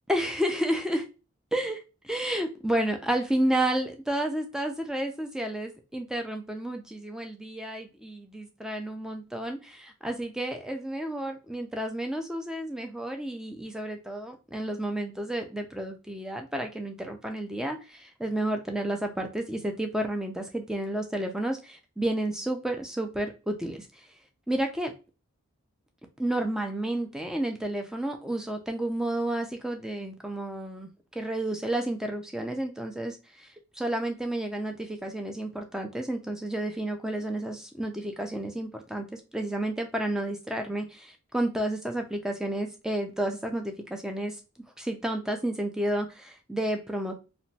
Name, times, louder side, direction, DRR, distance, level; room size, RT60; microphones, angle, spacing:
voice 1, 0.1-1.1 1.5-1.8 2.1-23.9 24.5-24.9 26.2-33.5 33.7-44.4 44.8-47.1, right 1 dB, 5° right, 0.3 m, -31 dB
2.9 x 2.1 x 2.6 m
head